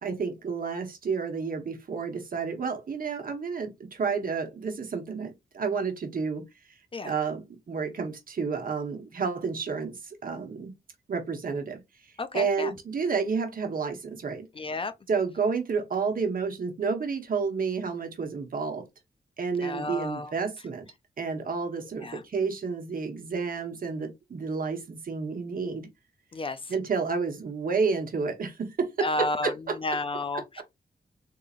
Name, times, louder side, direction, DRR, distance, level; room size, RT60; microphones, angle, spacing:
voice 1, 0.0-6.4 7.0-10.7 11.1-11.8 12.3-14.5 15.1-18.9 19.4-20.8 21.2-25.9 26.7-29.8 30.3-30.6, right 5 dB, 55° right, 1.0 m, -30 dB
voice 2, 12.2-12.7 14.6-14.9 19.6-20.3 22.0-22.2 26.3-26.6 29.0-29.5 29.8-30.6, left 2 dB, 30° left, 0.4 m, -31 dB
3.8 x 2.8 x 2.4 m
wide cardioid pair, 115°, 17 cm